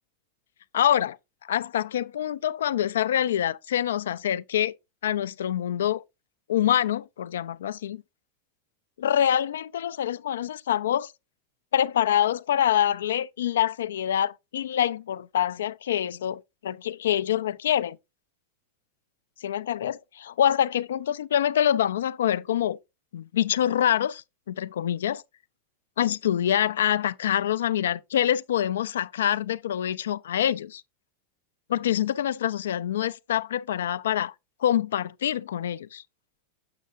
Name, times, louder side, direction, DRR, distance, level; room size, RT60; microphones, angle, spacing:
voice 1, 0.7-4.7 5.0-6.0 6.5-8.0 9.0-11.1 11.7-18.0 19.4-22.8 23.1-25.2 26.0-30.8 31.7-34.3 34.6-36.0, left 10 dB, 75° left, 0.3 m, -25 dB
6.6 x 6.5 x 2.4 m
hypercardioid pair, 95°, 0 cm